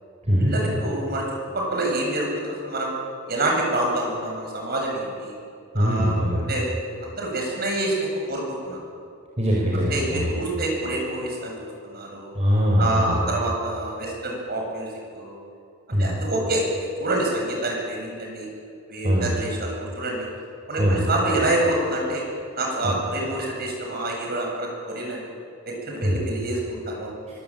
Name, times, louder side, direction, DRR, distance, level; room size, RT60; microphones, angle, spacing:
voice 1, 0.4-1.2 1.5-2.9 3.3-5.3 5.7-6.2 6.5-6.7 7.0-8.8 9.7-12.4 12.8-14.9 15.1-15.4 16.0-18.5 18.9-20.3 20.7-22.2 22.6-25.3 25.6-27.1, right 1 dB, 50° right, 0 dB, 7.9 m, -27 dB
voice 2, 5.7-6.5 9.4-10.4 12.3-13.3 15.9-16.1 19.0-19.4 20.8-21.1 22.8-22.9 26.0-26.2 27.3-27.4, equal, 30° right, -3 dB, 4.8 m, -22 dB
24.0 x 23.5 x 9.0 m, 2.4 s
head